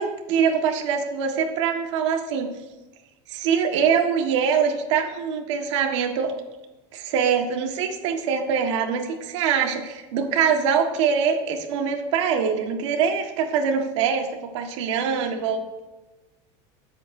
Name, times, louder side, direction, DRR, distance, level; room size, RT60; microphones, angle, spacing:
voice 1, 0.0-2.5 3.3-6.3 6.9-15.8, right 6 dB, 85° right, 3 dB, 1.6 m, -23 dB
23.0 x 8.0 x 2.7 m, 1.1 s
cardioid pair, 160°, 15 cm